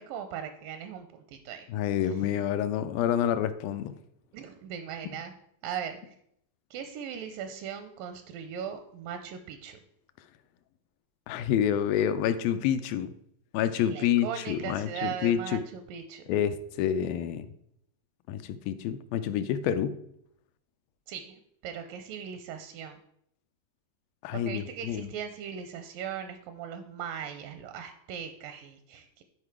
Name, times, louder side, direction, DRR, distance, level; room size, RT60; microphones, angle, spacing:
voice 1, 0.0-1.7 4.3-5.3 5.6-6.1 6.7-9.8 13.8-16.2 21.1-23.0 24.3-29.2, right 8 dB, 80° right, 8 dB, 2.1 m, -39 dB
voice 2, 1.7-3.9 11.3-13.1 13.5-15.6 16.3-17.5 18.3-19.9 24.2-25.1, left 9 dB, 80° left, 11 dB, 2.2 m, -28 dB
11.5 x 4.8 x 4.8 m, 0.74 s
omnidirectional pair, 4.3 m